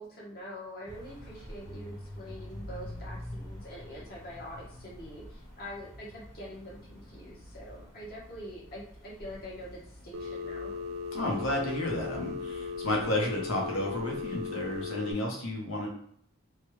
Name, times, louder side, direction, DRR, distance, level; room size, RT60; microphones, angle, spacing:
voice 1, 0.0-10.7, equal, 45° left, -5 dB, 1.1 m, -44 dB
sound 1, 0.9-14.8, equal, 15° left, 0.7 m, -47 dB
Telephone, 10.1-15.1, left 4 dB, 70° right, 0.4 m, -37 dB
voice 2, 11.1-15.9, left 1 dB, 85° left, -1 dB, 0.9 m, -32 dB
3.2 x 2.3 x 3.1 m, 0.65 s
head